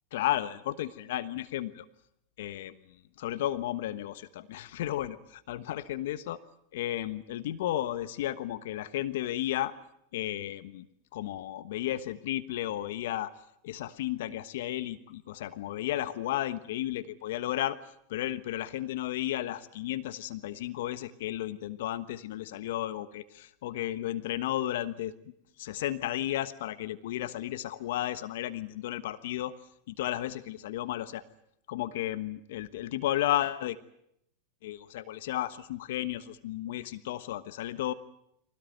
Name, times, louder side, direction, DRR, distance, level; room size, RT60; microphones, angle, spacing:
voice 1, 0.1-1.8 2.4-6.4 6.7-9.7 10.1-10.9 11.1-13.3 13.6-17.8 18.1-25.1 25.6-29.5 29.9-31.2 31.7-33.8 34.6-37.9, left 13 dB, 70° left, 13 dB, 1.2 m, -33 dB
24.0 x 18.0 x 9.3 m, 0.77 s
hypercardioid pair, 100°, 0 cm